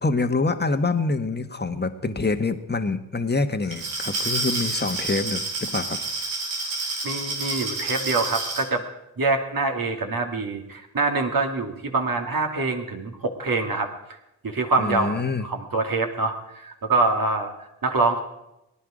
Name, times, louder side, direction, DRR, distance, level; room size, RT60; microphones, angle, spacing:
voice 1, 0.0-6.0 14.8-15.5, left 3 dB, 20° left, 8 dB, 1.6 m, -26 dB
Glass, 3.6-8.7, right 3 dB, 90° right, 2.4 m, -29 dB
voice 2, 7.0-8.9 9.2-13.9 14.4-18.2, right 3 dB, 45° right, 3 dB, 2.4 m, -25 dB
19.0 x 10.0 x 5.1 m, 0.90 s
hypercardioid pair, 40°, 46 cm